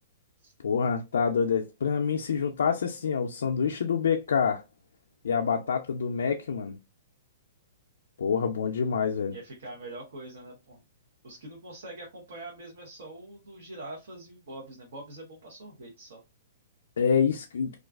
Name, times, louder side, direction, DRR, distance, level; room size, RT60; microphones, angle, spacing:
voice 1, 0.6-4.6 5.2-6.8 8.2-9.3 17.0-17.7, left 6 dB, 85° left, 0.3 m, -26 dB
voice 2, 9.3-10.8 11.2-16.2, right 2 dB, 65° right, 0.8 m, -44 dB
2.4 x 2.2 x 2.3 m
hypercardioid pair, 170°, 0 cm